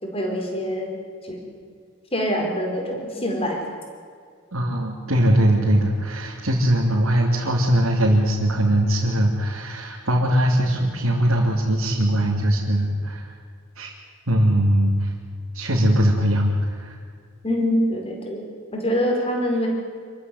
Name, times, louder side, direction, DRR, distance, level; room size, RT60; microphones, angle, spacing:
voice 1, 0.0-0.9 1.2-1.4 2.1-3.6 17.4-19.7, equal, 25° left, 1 dB, 4.7 m, -25 dB
voice 2, 4.5-13.3 13.7-13.9 14.3-15.1 15.5-17.0, equal, 80° right, -3 dB, 3.1 m, -20 dB
27.0 x 14.5 x 9.4 m, 2.2 s
head